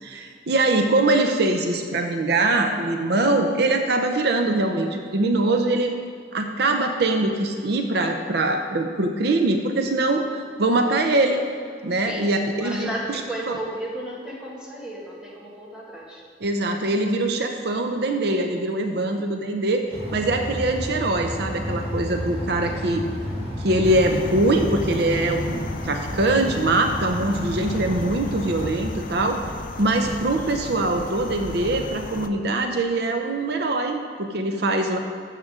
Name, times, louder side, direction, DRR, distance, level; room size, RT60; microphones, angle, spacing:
voice 1, 0.0-5.9 6.3-11.4 11.8-13.2 16.4-19.8 20.1-23.0 23.6-29.4 29.8-35.0, right 2 dB, 65° right, 5 dB, 0.7 m, -23 dB
voice 2, 12.6-16.2, right 1 dB, 5° right, -5 dB, 2.0 m, -33 dB
sound 1, 19.9-28.7, equal, 35° right, 1.8 m, -32 dB
sound 2, 23.8-32.3, left 2 dB, 50° left, 0.5 m, -34 dB
13.0 x 7.5 x 3.7 m, 2.3 s
head